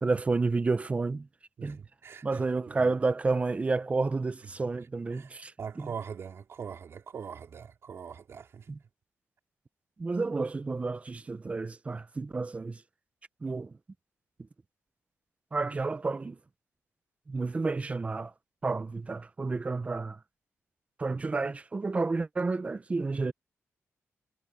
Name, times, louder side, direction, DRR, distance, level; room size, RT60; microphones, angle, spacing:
voice 1, 0.0-1.3 1.6-1.8 2.2-5.5 5.8-5.9 8.7-8.8 10.0-12.8 13.4-13.7 15.5-16.4 17.3-18.3 18.6-20.2 21.0-23.3, right 3 dB, 25° right, 0.7 m, -30 dB
voice 2, 1.6-2.9 4.8-8.7, right 7 dB, 55° right, 3.4 m, -43 dB
wide cardioid pair, 125°, 5 cm